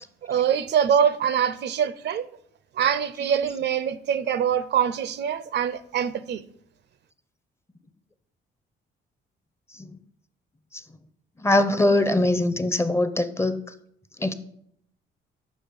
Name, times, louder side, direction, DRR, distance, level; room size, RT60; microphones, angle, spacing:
voice 1, 0.3-2.3 2.8-6.4, right 8 dB, 60° right, 0.5 m, -24 dB
voice 2, 11.4-13.6 14.2-14.3, left 2 dB, 15° left, 0.5 m, -22 dB
6.3 x 4.9 x 5.1 m
cardioid pair, 90°, 20 cm